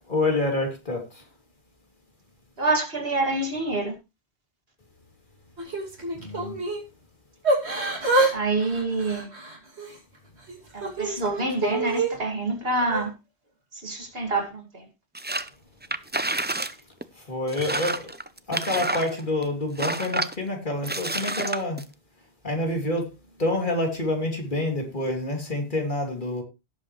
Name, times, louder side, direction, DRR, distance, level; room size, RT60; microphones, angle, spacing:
voice 1, 0.1-1.2 6.1-6.6 17.1-18.1 18.5-21.8 22.4-23.1 23.4-26.4, left 2 dB, 50° left, 3.2 m, -27 dB
voice 2, 2.6-3.9 8.3-9.3 10.7-13.1 13.8-14.8, right 2 dB, 65° right, 2.7 m, -26 dB
Yell / Crying sobbing, 5.6-6.8 7.4-8.3 8.6-10.0 10.5-12.1 12.8-13.0, right 2 dB, 90° right, 3.0 m, -26 dB
sound 1, 15.2-15.5 15.8-16.7 17.0-17.1 17.5-19.4 19.8-20.4 20.8-21.8, right 2 dB, 15° right, 0.5 m, -29 dB
17.5 x 7.6 x 3.2 m
omnidirectional pair, 1.1 m